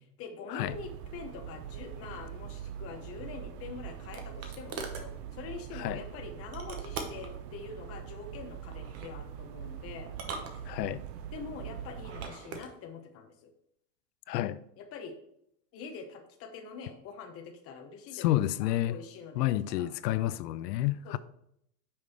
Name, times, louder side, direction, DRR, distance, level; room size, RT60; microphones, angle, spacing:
voice 1, 0.2-10.1 10.4-10.5 11.3-13.5 14.8-15.2 15.7-19.9 21.0-21.2, left 5 dB, 30° left, 0.8 m, -45 dB
sound 1, 0.7-12.3, right 9 dB, 75° right, 0.7 m, -43 dB
sound 2, 3.3-5.1 6.5-7.4 8.7-9.1 10.1-11.1 11.9-12.7, right 4 dB, 30° right, 0.9 m, -42 dB
voice 2, 10.7-11.0 14.3-14.6 18.1-19.0 19.4-21.2, left 14 dB, 85° left, 0.5 m, -30 dB
5.7 x 4.9 x 4.3 m
supercardioid pair, 135°, 48 cm